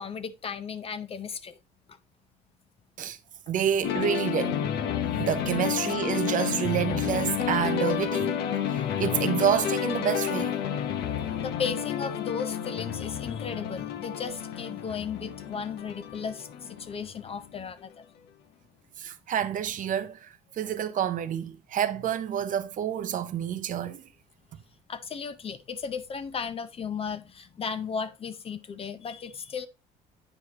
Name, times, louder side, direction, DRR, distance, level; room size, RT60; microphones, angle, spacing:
voice 1, 0.0-1.6 1.9-2.0 11.4-17.9 24.9-29.7, left 6 dB, 35° left, 0.6 m, -35 dB
voice 2, 3.5-4.6 5.2-8.4 8.7-10.5 19.0-24.1, right 9 dB, 50° right, 0.6 m, -28 dB
sound 1, 3.8-17.6, left 9 dB, 75° left, 0.8 m, -30 dB
8.9 x 4.8 x 2.8 m
cardioid pair, 110°, 17 cm